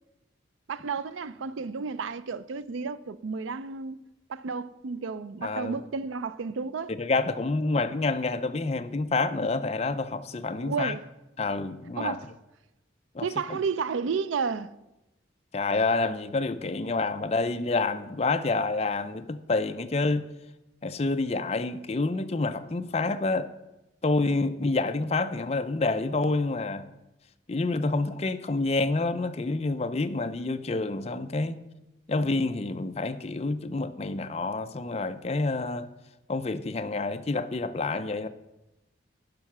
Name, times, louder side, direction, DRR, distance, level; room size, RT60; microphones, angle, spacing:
voice 1, 0.7-4.0 4.3-6.9 10.6-11.1 12.0-12.3 13.2-14.7, right 5 dB, 85° right, 0.4 m, -32 dB
voice 2, 5.4-5.8 6.9-10.9 11.4-12.2 13.1-13.3 15.5-20.3 20.8-23.5 24.0-26.9 27.5-31.6 32.1-35.9 36.3-38.3, left 3 dB, 35° left, 0.5 m, -28 dB
10.5 x 5.7 x 6.0 m
head